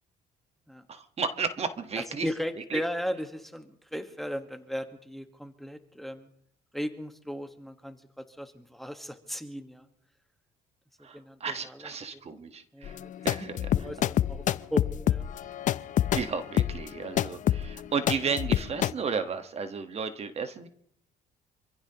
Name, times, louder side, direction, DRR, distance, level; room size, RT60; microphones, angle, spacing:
voice 1, 0.9-2.3 2.7-2.8 11.0-13.9 16.1-20.7, right 5 dB, 40° right, 9 dB, 1.3 m, -33 dB
voice 2, 2.0-6.3 6.7-9.9 11.1-12.2 12.7-13.1 13.7-14.4 14.7-15.3, equal, ahead, 7 dB, 1.4 m, -36 dB
sound 1, 12.8-18.9, left 11 dB, 50° left, 0.5 m, -27 dB
27.0 x 15.5 x 3.0 m, 0.68 s
cardioid pair, 110°, 17 cm